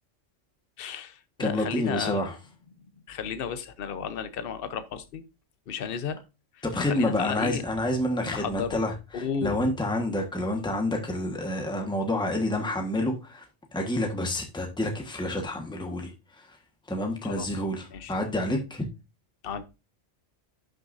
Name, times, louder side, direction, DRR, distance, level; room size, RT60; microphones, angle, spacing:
voice 1, 0.8-2.3 3.1-5.2 5.7-6.2 6.5-7.6 8.3-8.8 9.1-9.5 17.2-17.6 17.9-18.1 19.4-19.7, left 7 dB, 50° left, 0.9 m, -33 dB
voice 2, 1.4-2.3 6.6-13.4 13.7-16.1 16.4-16.5 16.9-18.8, left 1 dB, 5° left, 1.3 m, -28 dB
11.5 x 6.3 x 2.6 m
omnidirectional pair, 1.3 m